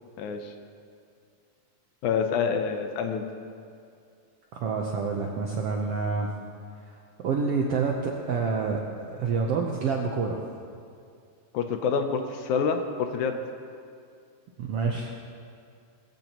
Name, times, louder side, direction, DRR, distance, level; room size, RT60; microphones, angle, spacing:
voice 1, 0.2-0.5 2.0-3.2 11.5-13.4, left 6 dB, 75° left, 6 dB, 2.0 m, -27 dB
voice 2, 4.5-6.3 7.2-10.4 14.6-15.1, right 5 dB, 75° right, 0 dB, 1.4 m, -28 dB
20.5 x 14.5 x 3.0 m, 2.4 s
omnidirectional pair, 3.8 m